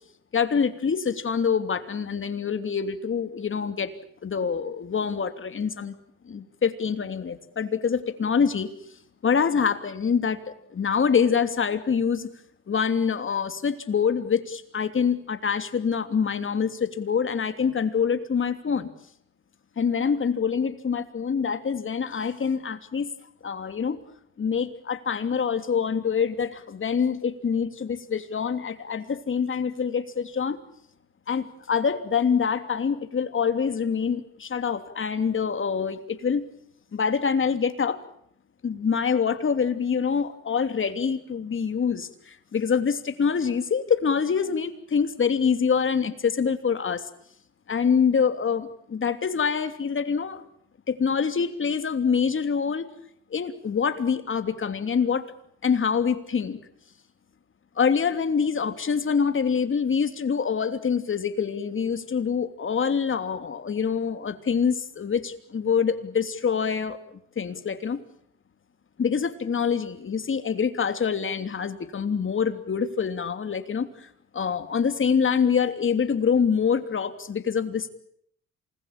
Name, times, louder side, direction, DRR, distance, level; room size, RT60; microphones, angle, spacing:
voice 1, 0.3-3.9 4.2-5.9 6.2-8.7 9.2-12.3 12.7-18.9 19.8-23.1 23.4-24.0 24.4-30.6 31.3-36.4 36.9-38.0 38.6-47.1 47.7-50.4 50.9-52.9 53.3-55.3 55.6-56.6 57.8-68.0 69.0-74.1 74.3-77.9, left 6 dB, 40° left, 9 dB, 3.0 m, -25 dB
28.0 x 21.0 x 9.0 m, 0.70 s
cardioid pair, 90°, 30 cm